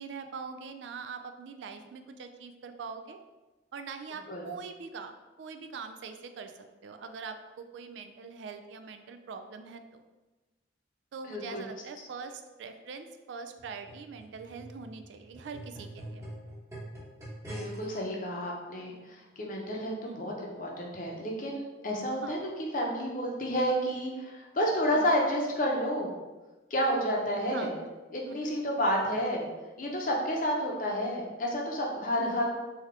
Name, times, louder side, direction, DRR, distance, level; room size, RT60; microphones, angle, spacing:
voice 1, 0.0-3.2 3.7-5.1 5.4-6.5 6.8-10.0 11.1-16.3 20.0-20.4 22.2-22.4 24.9-25.2 27.5-27.9 28.3-28.5 32.2-32.5, right 5 dB, 75° right, 7 dB, 0.3 m, -43 dB
voice 2, 11.3-11.6 17.5-26.1 26.7-27.7 28.1-29.5 29.8-32.5, equal, 45° left, -1 dB, 0.7 m, -30 dB
sound 1, 13.6-18.0 18.8-18.9, right 1 dB, 15° right, 1.0 m, -44 dB
3.6 x 2.8 x 3.3 m, 1.2 s
head